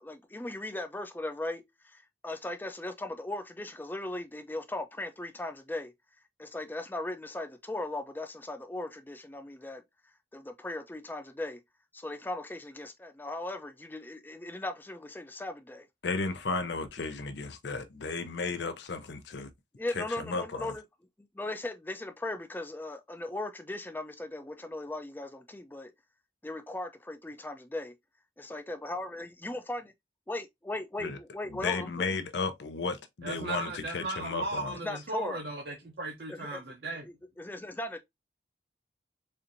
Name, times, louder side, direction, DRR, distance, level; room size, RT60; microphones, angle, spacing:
voice 1, 0.0-5.9 6.4-9.8 10.3-11.6 11.9-15.9 19.8-20.8 21.3-25.9 26.4-27.9 28.4-29.9 30.3-31.9 34.8-35.4 36.3-36.6 37.4-38.0, left 2 dB, 10° left, 0.4 m, -38 dB
voice 2, 16.0-19.5 19.9-20.7 31.0-31.2 31.5-34.8, left 4 dB, 75° left, 0.6 m, -34 dB
voice 3, 33.2-37.0, right 2 dB, 60° right, 0.6 m, -37 dB
4.3 x 2.6 x 2.5 m
head